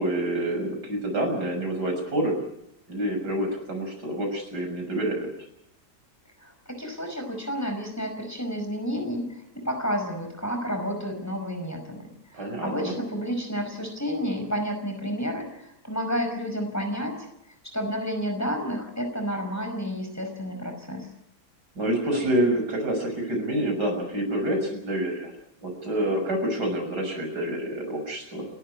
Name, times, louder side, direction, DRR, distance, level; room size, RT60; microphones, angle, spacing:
voice 1, 0.0-2.4 2.9-5.3 12.3-12.9 21.8-25.3 25.6-28.5, right 1 dB, 90° right, 3 dB, 6.9 m, -27 dB
voice 2, 6.4-17.3 17.6-21.1, equal, 10° left, 4 dB, 5.4 m, -31 dB
29.0 x 13.0 x 9.8 m, 0.79 s
omnidirectional pair, 1.7 m